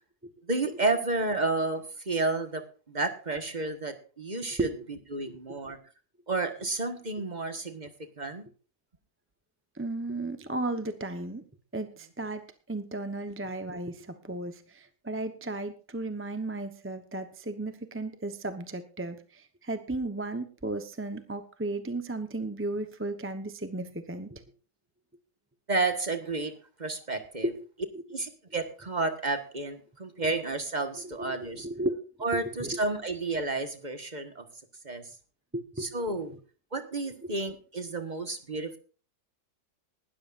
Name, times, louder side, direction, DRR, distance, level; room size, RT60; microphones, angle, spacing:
voice 1, 0.5-5.8 6.3-7.9 8.2-8.5 25.7-26.5 26.8-27.5 28.1-31.7 32.2-34.4 34.8-35.0 35.8-36.4 36.7-38.8, right 3 dB, 30° right, 7 dB, 1.4 m, -31 dB
voice 2, 9.7-11.4 11.7-24.4 27.4-27.7 27.9-28.0 31.2-32.0 32.6-32.8 35.5-35.9 36.2-36.4 37.2-37.3, right 2 dB, 10° right, 7 dB, 0.6 m, -35 dB
19.0 x 13.0 x 2.5 m, 0.38 s
omnidirectional pair, 1.8 m